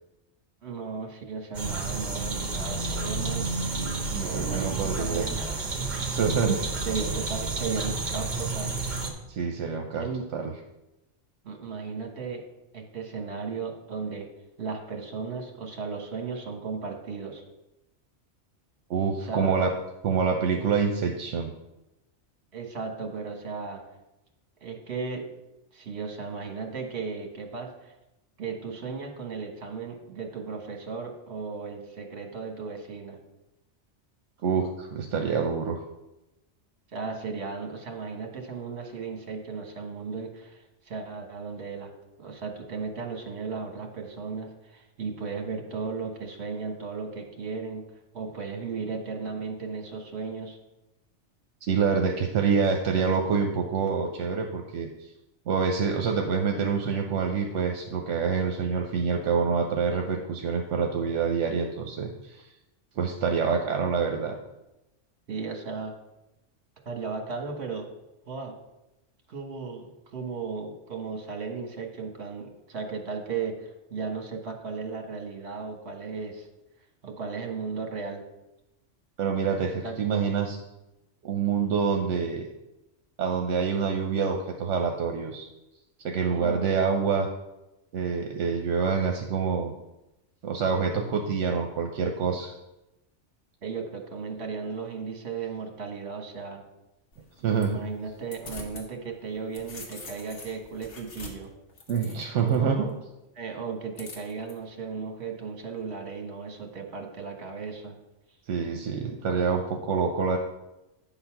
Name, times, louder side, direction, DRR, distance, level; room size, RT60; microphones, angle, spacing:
voice 1, 0.6-3.5 4.2-5.6 5.9-6.2 6.8-8.7 9.9-10.2 11.4-12.4 12.7-14.3 14.6-17.4 19.2-19.7 22.5-23.8 24.6-25.2 25.7-27.9 28.4-33.2 36.9-41.9 42.2-47.8 48.1-50.6 65.3-65.9 66.8-67.9 68.3-68.5 69.3-76.5 77.0-78.2 79.8-80.0 86.3-86.9 93.6-96.6 97.7-101.5 102.4-102.9 103.3-108.0, right 5 dB, 60° right, 3 dB, 1.4 m, -35 dB
sound 1, 1.5-9.1, right 3 dB, 40° right, 1.1 m, -31 dB
voice 2, 4.1-5.2 6.1-6.6 9.3-10.1 10.3-10.5 18.9-19.7 20.0-21.5 34.4-35.8 51.6-54.9 55.5-62.4 63.0-64.3 79.2-80.6 81.2-82.5 83.2-85.5 86.0-87.3 87.9-89.7 90.4-92.5 97.4-97.8 101.9-102.8 108.5-110.4, right 6 dB, 80° right, 3 dB, 1.0 m, -26 dB
sound 2, 97.1-98.9 99.2-102.6 104.0-104.5, left 3 dB, 75° left, 1.5 m, -45 dB
8.7 x 4.0 x 5.8 m, 0.95 s
omnidirectional pair, 1.2 m